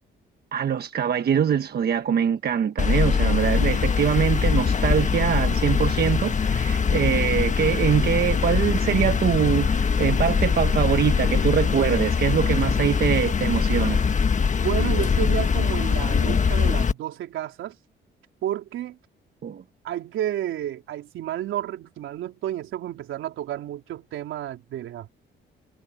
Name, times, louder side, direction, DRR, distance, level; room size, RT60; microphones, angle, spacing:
voice 1, 0.5-14.0 19.4-19.6, right 8 dB, 55° right, 1.3 m, -23 dB
sound 1, 2.8-16.9, left 6 dB, 40° left, 1.4 m, -22 dB
voice 2, 14.6-17.8 18.4-19.0 19.8-25.1, right 12 dB, 80° right, 4.1 m, -31 dB
cardioid pair, 90°, 20 cm